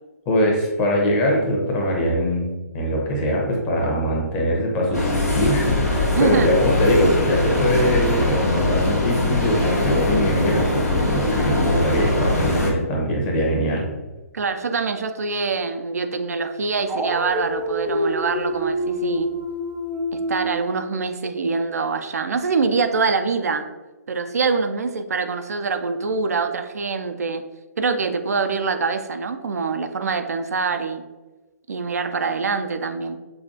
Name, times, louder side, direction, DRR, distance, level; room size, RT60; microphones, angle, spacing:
voice 1, 0.3-2.5 2.7-13.8, equal, 30° left, -1 dB, 1.0 m, -22 dB
sound 1, 4.9-12.7, left 2 dB, 80° left, 1.2 m, -22 dB
voice 2, 6.1-6.5 14.3-19.3 20.1-23.7 24.1-27.4 27.8-31.1 31.7-33.2, right 4 dB, 75° right, 8 dB, 0.4 m, -24 dB
Dog, 16.9-20.6, equal, 5° right, 0.4 m, -26 dB
5.4 x 2.4 x 2.7 m, 1.2 s
figure-of-eight pair, 130°, 9 cm